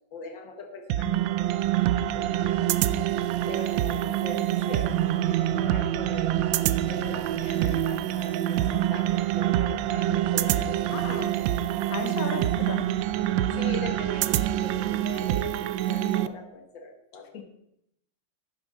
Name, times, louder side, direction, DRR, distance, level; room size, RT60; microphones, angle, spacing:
voice 1, 0.1-2.7 3.5-6.3 6.9-11.3 12.3-12.4 13.5-17.4, left 3 dB, 85° left, 5 dB, 2.2 m, -41 dB
sound 1, 0.9-16.3, right 13 dB, 85° right, 1.3 m, -26 dB
voice 2, 10.9-11.3 11.9-12.9 17.3-17.4, left 6 dB, 55° left, 6 dB, 1.5 m, -35 dB
11.5 x 9.3 x 4.3 m, 0.76 s
omnidirectional pair, 2.0 m